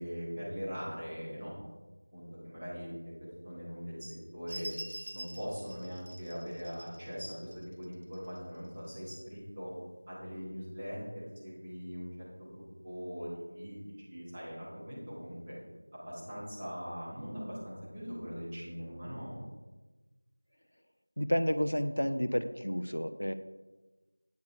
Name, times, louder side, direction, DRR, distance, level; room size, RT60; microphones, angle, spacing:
voice 1, 0.0-1.5 2.1-2.9 3.4-4.7 5.1-9.7 10.1-13.8 14.1-15.6 15.9-19.4, equal, 10° right, -10 dB, 1.8 m, -41 dB
sound 1, 4.5-8.4 9.0-9.1, right 1 dB, 55° right, 0.9 m, -46 dB
voice 2, 21.2-23.3, equal, 70° left, 10 dB, 0.6 m, -30 dB
9.5 x 6.5 x 4.6 m, 1.2 s
figure-of-eight pair, 175°, 0 cm